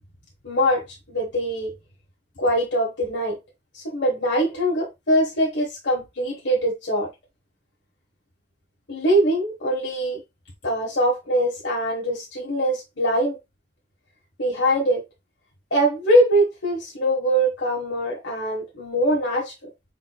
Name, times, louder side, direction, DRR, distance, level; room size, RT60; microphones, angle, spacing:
voice 1, 0.4-1.7 2.4-3.4 3.7-7.1 8.9-10.2 10.6-13.4 14.4-15.0 15.7-19.7, right 1 dB, 75° left, 1.5 m, -22 dB
6.0 x 3.6 x 2.3 m
head